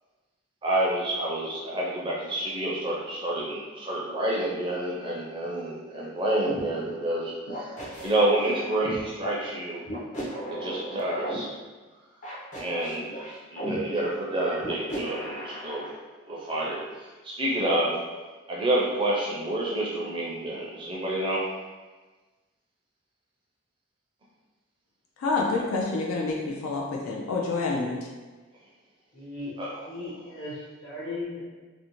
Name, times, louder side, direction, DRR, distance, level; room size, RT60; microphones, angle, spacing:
voice 1, 0.6-7.7 8.0-9.8 10.6-11.5 12.6-13.2 13.5-15.8 16.3-16.8 17.2-18.0 18.5-21.4 29.6-29.8, right 1 dB, 25° right, -4 dB, 0.4 m, -28 dB
sound 1, 6.5-6.6 7.5-9.0 9.9-11.4 12.2-13.8 14.6-15.9, right 1 dB, 35° left, 0.5 m, -36 dB
voice 2, 25.2-28.0, left 3 dB, 85° left, -1 dB, 0.4 m, -28 dB
voice 3, 29.1-29.5 29.9-31.4, left 2 dB, 60° left, -8 dB, 1.1 m, -37 dB
2.6 x 2.0 x 2.9 m, 1.3 s
head